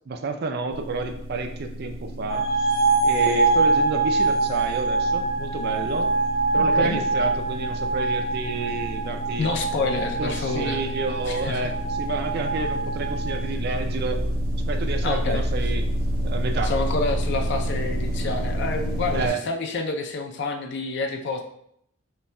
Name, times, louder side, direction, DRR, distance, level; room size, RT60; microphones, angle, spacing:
voice 1, 0.1-2.5 3.0-6.1 6.5-9.5 10.2-14.2 14.7-15.9 16.2-16.7 19.1-19.4, right 3 dB, 45° right, 5 dB, 0.4 m, -30 dB
sound 1, 0.7-19.3, equal, 80° right, 0.7 m, -30 dB
sound 2, 2.3-13.4, right 3 dB, 85° left, 1.4 m, -24 dB
voice 2, 6.6-7.0 9.4-10.8 11.3-11.7 15.0-15.5 16.6-21.4, left 3 dB, 50° left, 4 dB, 0.4 m, -28 dB
5.4 x 2.3 x 2.2 m, 0.72 s
head